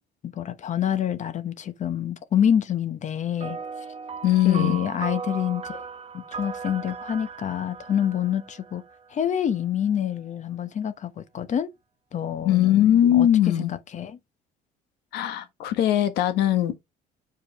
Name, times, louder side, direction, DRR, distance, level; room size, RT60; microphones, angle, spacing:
voice 1, 0.2-3.6 4.4-5.8 6.1-8.8 9.1-11.7 12.1-13.3 13.6-14.2, left 9 dB, 45° left, 0.9 m, -27 dB
sound 1, 3.4-9.2, right 6 dB, 35° right, 1.1 m, -37 dB
voice 2, 4.2-4.8 12.4-13.7 15.1-16.8, left 11 dB, 80° left, 1.3 m, -20 dB
6.9 x 4.7 x 3.5 m
cardioid pair, 110°, 17 cm